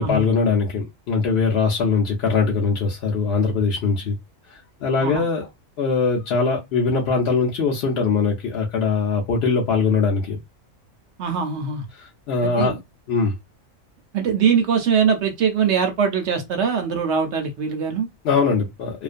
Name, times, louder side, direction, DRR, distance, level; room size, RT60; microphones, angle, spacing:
voice 1, 0.0-4.2 4.5-5.5 5.8-10.4 11.9-12.8 13.1-13.3 18.2-19.0, left 4 dB, 65° left, 0.7 m, -21 dB
voice 2, 11.2-11.8 12.4-12.8 14.1-18.1, right 6 dB, 65° right, 0.8 m, -22 dB
2.4 x 2.1 x 2.4 m
omnidirectional pair, 1.4 m